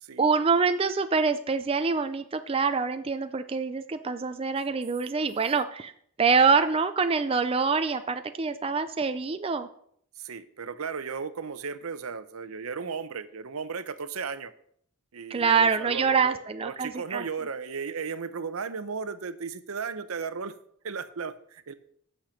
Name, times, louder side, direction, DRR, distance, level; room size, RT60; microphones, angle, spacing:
voice 1, 0.2-5.9 6.2-9.7 15.3-17.2, right 5 dB, 25° right, 9 dB, 0.4 m, -25 dB
voice 2, 10.2-14.5 15.1-20.6 20.8-21.7, right 5 dB, 80° right, 13 dB, 0.7 m, -35 dB
8.8 x 6.6 x 5.8 m, 0.65 s
head